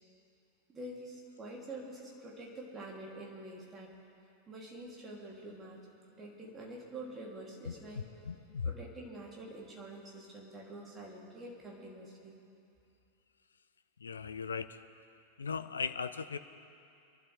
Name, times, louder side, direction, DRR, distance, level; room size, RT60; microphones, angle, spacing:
voice 1, 0.7-3.9 4.5-5.9 6.2-8.1 8.6-12.4, right 1 dB, 20° right, -3 dB, 3.2 m, -46 dB
voice 2, 8.3-8.7 14.0-14.8 15.4-16.4, left 5 dB, 70° left, 12 dB, 0.5 m, -37 dB
24.5 x 12.0 x 3.5 m, 2.6 s
figure-of-eight pair, 90°, 0 cm